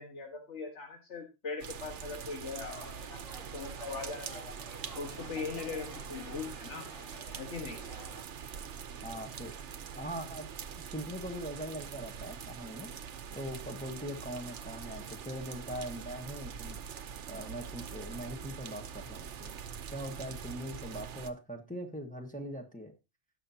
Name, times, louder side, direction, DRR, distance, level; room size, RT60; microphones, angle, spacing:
voice 1, 0.0-3.2 3.5-4.5 5.0-6.9 7.4-7.8, left 4 dB, 80° left, 2 dB, 1.8 m, -40 dB
sound 1, 1.6-21.3, right 7 dB, 80° right, 1.1 m, -44 dB
sound 2, 2.6-8.2, equal, 30° left, 1.9 m, -52 dB
voice 2, 9.0-9.5 10.0-10.5 10.9-12.9 13.3-16.8 17.3-19.6 19.9-22.9, equal, 5° left, 2 dB, 1.3 m, -41 dB
17.5 x 6.0 x 2.8 m, 0.26 s
omnidirectional pair, 1.2 m